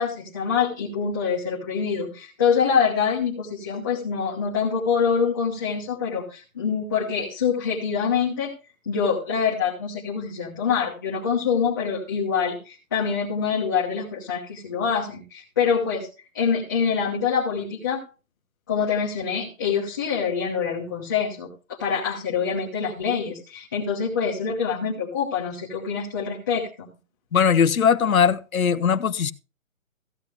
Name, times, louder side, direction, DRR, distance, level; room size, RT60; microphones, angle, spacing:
voice 1, 0.0-8.5 8.9-16.1 16.3-18.0 18.7-21.5 21.8-26.9, left 6 dB, 15° left, 1.0 m, -25 dB
voice 2, 27.3-29.3, left 7 dB, 85° left, 1.0 m, -20 dB
15.5 x 7.9 x 3.5 m
hypercardioid pair, 175°, 41 cm